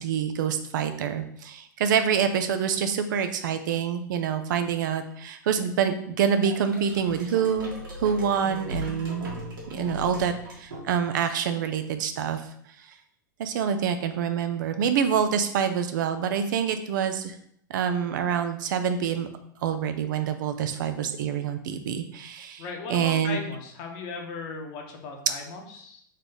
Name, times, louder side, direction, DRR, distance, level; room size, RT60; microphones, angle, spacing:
voice 1, 0.0-7.7 8.0-9.3 9.7-12.4 13.4-17.3 17.7-19.3 19.6-23.4, right 7 dB, 70° right, 8 dB, 0.6 m, -26 dB
sound 1, 6.4-11.3, equal, 90° right, 1.6 m, -38 dB
voice 2, 22.6-26.0, left 4 dB, 50° left, 2 dB, 1.1 m, -37 dB
4.1 x 3.3 x 3.9 m, 0.65 s
hypercardioid pair, 110°, 11 cm